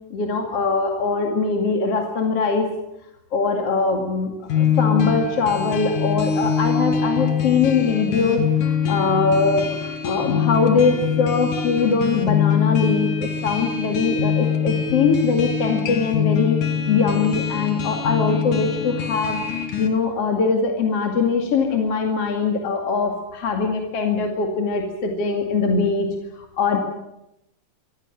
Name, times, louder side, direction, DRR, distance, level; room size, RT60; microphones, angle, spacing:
voice 1, 0.1-2.7 3.3-9.6 10.0-16.6 16.9-26.1 26.6-26.8, left 4 dB, 50° left, 3 dB, 3.1 m, -22 dB
sound 1, 4.5-19.9, left 7 dB, 75° left, 3.5 m, -23 dB
25.5 x 15.5 x 9.0 m, 0.86 s
omnidirectional pair, 3.7 m